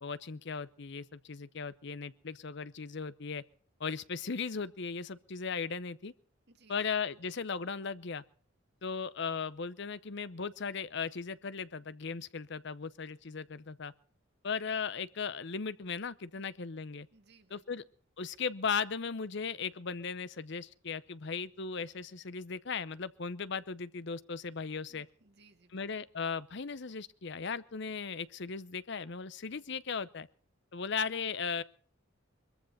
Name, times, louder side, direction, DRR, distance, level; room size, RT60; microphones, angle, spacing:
voice 1, 0.0-3.4 3.8-6.1 6.7-8.2 8.8-13.9 14.4-17.1 17.5-17.8 18.2-25.1 25.7-30.3 30.7-31.6, left 5 dB, 60° left, 16 dB, 0.8 m, -37 dB
voice 2, 6.5-6.9 16.3-16.4 17.1-17.8 24.9-25.9, right 3 dB, 55° right, 7 dB, 2.2 m, -63 dB
22.5 x 14.5 x 4.1 m, 0.43 s
head